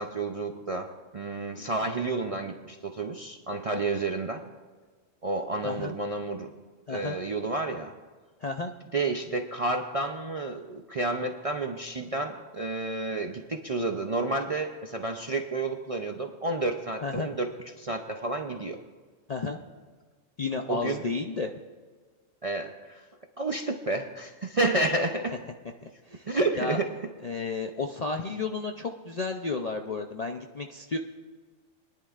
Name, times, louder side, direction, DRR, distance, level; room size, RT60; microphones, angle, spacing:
voice 1, 0.0-4.4 5.2-6.5 6.9-7.9 8.9-18.8 20.7-21.0 22.4-23.1 23.4-25.4 26.3-27.0, right 2 dB, 45° right, 3 dB, 0.4 m, -30 dB
voice 2, 8.4-8.7 17.0-17.3 19.3-19.6 20.4-21.5 26.1-26.3 26.6-26.8 27.2-31.0, left 4 dB, 50° left, 4 dB, 0.4 m, -32 dB
23.0 x 10.5 x 2.4 m, 1.4 s
omnidirectional pair, 1.3 m